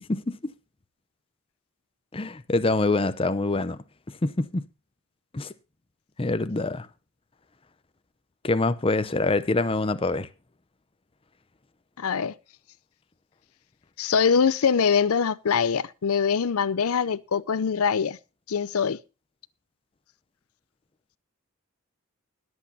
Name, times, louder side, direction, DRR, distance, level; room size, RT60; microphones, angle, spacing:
voice 1, 2.1-3.8 4.2-4.6 5.3-5.5 6.2-6.9 8.4-10.3, left 2 dB, 25° left, 0.6 m, -25 dB
voice 2, 12.0-12.3 14.0-18.2 18.5-19.0, left 6 dB, 75° left, 0.5 m, -23 dB
21.0 x 8.1 x 2.7 m
head